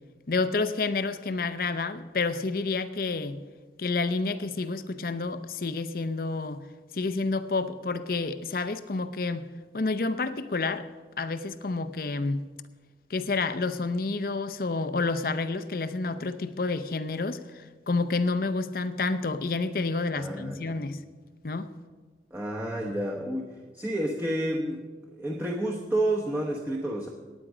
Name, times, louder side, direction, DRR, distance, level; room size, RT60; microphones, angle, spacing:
voice 1, 0.3-3.4 3.8-6.7 6.9-9.5 9.7-10.9 11.2-12.4 13.1-21.0 21.4-21.7, left 3 dB, 55° left, 12 dB, 0.6 m, -29 dB
voice 2, 20.1-20.7 22.3-27.1, right 1 dB, 10° right, -2 dB, 1.0 m, -30 dB
17.5 x 9.3 x 5.0 m, 1.4 s
head